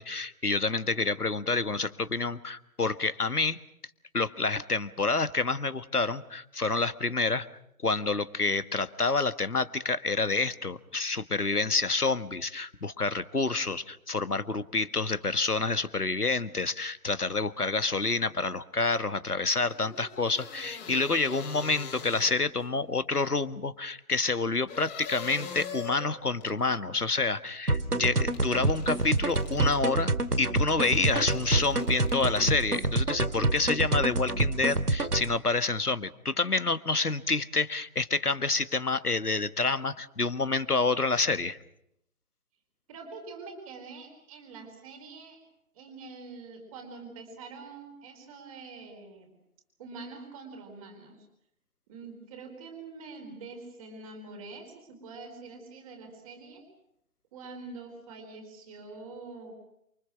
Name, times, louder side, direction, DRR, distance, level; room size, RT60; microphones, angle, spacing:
voice 1, 0.0-3.6 4.1-7.5 7.8-30.1 30.4-41.6, left 3 dB, 85° left, 12 dB, 1.8 m, -28 dB
sound 1, 19.7-22.7 24.7-26.6 28.3-29.8 30.8-32.8, left 6 dB, 15° left, 3.0 m, -43 dB
sound 2, 27.7-35.3, right 2 dB, 85° right, 2.3 m, -27 dB
voice 2, 42.9-45.4 45.7-49.3 49.8-51.3 51.9-56.6 57.3-59.5, right 4 dB, 25° right, 3 dB, 4.6 m, -45 dB
28.5 x 24.5 x 6.3 m, 0.76 s
figure-of-eight pair, 150°, 45 cm